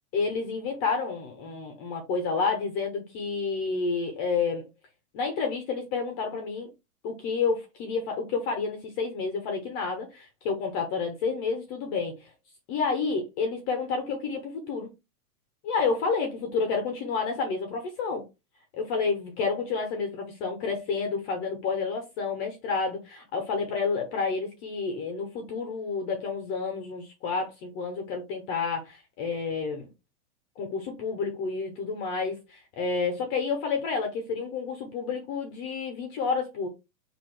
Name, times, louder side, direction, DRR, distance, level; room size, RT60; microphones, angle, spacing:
voice 1, 0.1-4.7 5.1-6.7 7.0-12.3 12.7-14.9 15.6-18.2 18.7-29.9 30.6-36.7, left 4 dB, 20° left, 0.4 m, -30 dB
4.3 x 2.7 x 4.4 m
hypercardioid pair, 145°, 45 cm